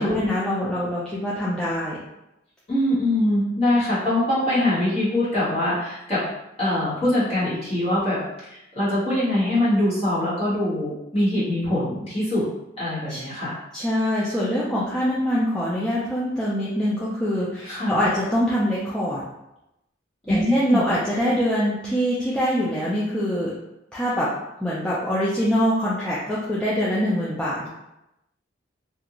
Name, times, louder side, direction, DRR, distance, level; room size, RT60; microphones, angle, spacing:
voice 1, 0.0-2.0 13.1-13.2 13.7-19.2 20.3-23.5 23.9-24.3 24.6-27.7, equal, 5° left, -9 dB, 0.4 m, -24 dB
voice 2, 2.7-6.2 6.6-12.4 12.8-13.6 17.7-18.0 20.3-20.8, left 1 dB, 30° left, -10 dB, 1.3 m, -23 dB
2.5 x 2.4 x 2.9 m, 0.88 s
head